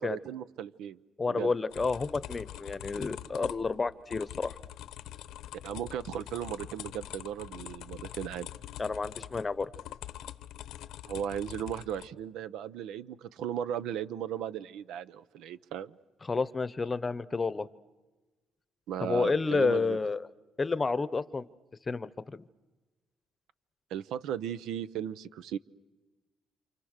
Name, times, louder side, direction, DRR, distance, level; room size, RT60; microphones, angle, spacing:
voice 1, 0.0-1.0 1.3-1.5 5.6-8.5 11.0-16.0 18.9-20.0 23.9-25.6, right 9 dB, 85° right, 14 dB, 0.8 m, -36 dB
voice 2, 1.2-4.5 8.8-9.7 16.2-17.7 19.0-20.3 20.6-21.4 21.9-22.4, left 4 dB, 25° left, 16 dB, 0.9 m, -30 dB
sound 1, 1.7-12.1, left 12 dB, 85° left, 1.0 m, -44 dB
28.5 x 28.0 x 6.6 m, 1.2 s
cardioid pair, 115°, 0 cm